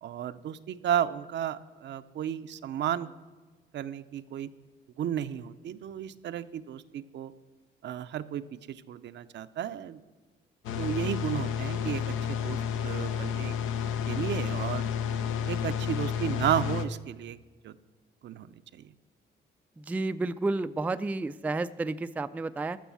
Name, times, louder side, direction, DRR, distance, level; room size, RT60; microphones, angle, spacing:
voice 1, 0.0-3.1 3.7-4.5 5.0-7.3 7.8-10.0 10.8-13.5 14.1-14.8 15.5-17.4 17.6-17.7 18.2-18.9, right 10 dB, 65° right, 12 dB, 0.6 m, -33 dB
sound 1, 10.6-16.8, left 8 dB, 85° left, 0.8 m, -31 dB
voice 2, 19.8-22.8, right 2 dB, 10° right, 12 dB, 0.3 m, -31 dB
13.5 x 6.2 x 7.0 m, 1.3 s
cardioid pair, 90°, 20 cm